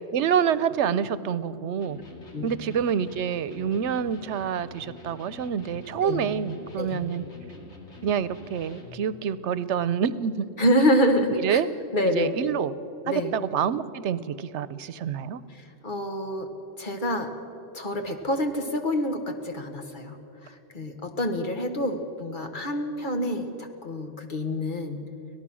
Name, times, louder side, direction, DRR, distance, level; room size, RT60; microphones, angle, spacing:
voice 1, 0.1-2.0 2.4-7.2 8.0-10.3 11.3-11.7 12.1-12.7 13.1-15.4, right 8 dB, 90° right, 16 dB, 1.0 m, -27 dB
Electric guitar, 1.8-9.1, left 3 dB, 85° left, 2.6 m, -46 dB
voice 2, 10.6-11.6 11.9-12.4 13.0-13.3 15.6-16.5 16.8-17.3 17.7-20.2 20.4-25.0, equal, 45° left, 5 dB, 1.7 m, -27 dB
25.0 x 17.5 x 6.2 m, 2.9 s
omnidirectional pair, 1.2 m